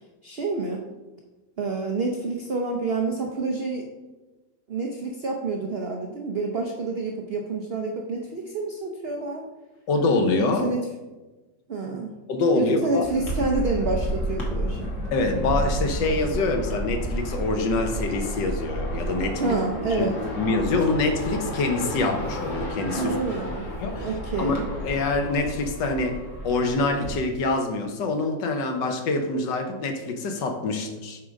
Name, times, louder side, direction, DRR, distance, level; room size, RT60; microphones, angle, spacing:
voice 1, 0.2-0.9 1.6-3.9 4.7-9.4 10.4-10.8 11.7-12.2 12.5-14.9 19.4-20.1 22.9-23.7 24.0-24.6, right 3 dB, 60° right, 1 dB, 0.6 m, -28 dB
voice 2, 9.9-10.6 12.3-13.0 15.1-19.6 20.0-20.1 20.4-23.1 23.8-24.1 24.4-26.2 26.4-31.2, left 3 dB, 80° left, 5 dB, 1.6 m, -25 dB
sound 1, 13.0-27.1, equal, 45° left, 1.7 m, -31 dB
7.6 x 3.7 x 5.1 m, 1.1 s
omnidirectional pair, 1.9 m